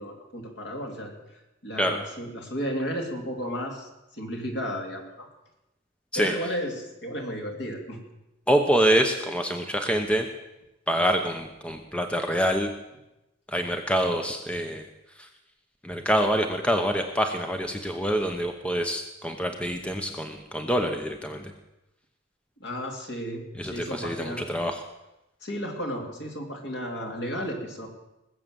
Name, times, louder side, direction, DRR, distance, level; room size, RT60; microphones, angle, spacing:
voice 1, 0.0-5.3 6.1-8.0 22.6-24.5 25.4-27.9, equal, 65° left, 1 dB, 3.1 m, -33 dB
voice 2, 8.5-10.3 10.9-12.7 13.5-14.9 15.2-15.3 15.8-21.5 23.6-24.8, equal, 5° left, 5 dB, 0.9 m, -26 dB
20.0 x 7.6 x 7.6 m, 0.95 s
head